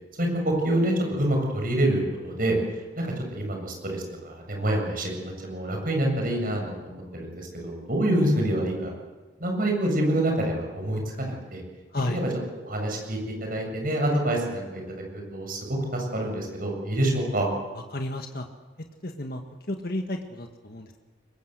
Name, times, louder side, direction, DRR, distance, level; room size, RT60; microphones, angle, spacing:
voice 1, 0.2-2.6 3.0-8.9 9.4-11.6 12.1-12.3 12.6-14.8 15.1-17.5, right 1 dB, 45° right, 2 dB, 7.5 m, -27 dB
voice 2, 17.9-18.5 19.0-19.4 19.7-21.0, left 1 dB, 50° left, 4 dB, 1.8 m, -32 dB
24.5 x 21.5 x 8.2 m, 1.3 s
head